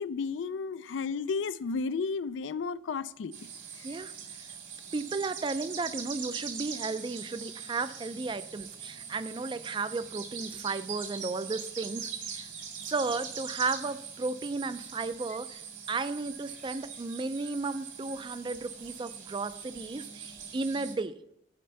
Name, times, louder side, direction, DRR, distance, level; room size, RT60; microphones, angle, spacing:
voice 1, 0.0-3.3 3.8-3.9, left 4 dB, 85° left, 15 dB, 0.4 m, -33 dB
sound 1, 3.3-20.9, right 7 dB, 80° right, 2.0 m, -42 dB
voice 2, 3.8-4.1 4.9-12.5 12.8-15.6 15.9-21.2, right 3 dB, 25° right, 14 dB, 0.3 m, -34 dB
8.7 x 4.3 x 6.7 m, 0.76 s
head